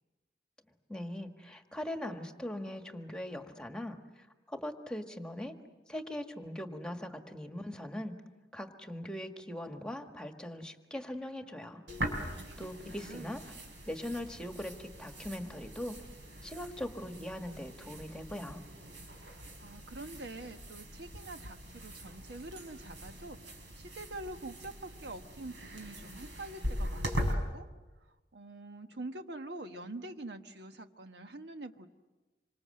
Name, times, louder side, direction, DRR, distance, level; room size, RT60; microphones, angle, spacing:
voice 1, 0.9-4.0 4.5-5.5 5.9-8.1 8.5-11.8 12.6-13.4 13.9-16.0 16.4-18.6, left 1 dB, 5° left, 5 dB, 1.5 m, -40 dB
sound 1, 11.9-27.3, equal, 90° right, 5.1 m, -41 dB
voice 2, 12.2-13.4 19.3-23.4 23.8-27.7 28.0-31.9, right 2 dB, 70° right, 7 dB, 1.3 m, -45 dB
27.0 x 25.5 x 7.7 m, 1.2 s
head